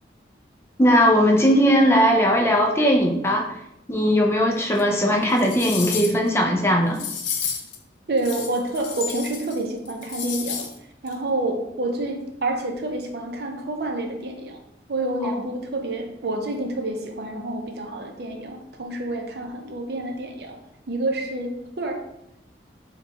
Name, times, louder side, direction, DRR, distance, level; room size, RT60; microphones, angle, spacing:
voice 1, 0.8-3.5 3.9-7.0 15.2-15.3, equal, 15° left, 0.4 m, -19 dB
sound 1, 4.7-4.8 5.3-6.3 6.9-7.8 8.2-9.6 9.8-10.7 11.1-11.2, left 7 dB, 90° left, 0.6 m, -31 dB
voice 2, 8.1-10.7 11.0-14.6 14.9-20.6 20.9-22.0, right 2 dB, 60° right, 0.6 m, -28 dB
4.6 x 2.3 x 3.9 m
head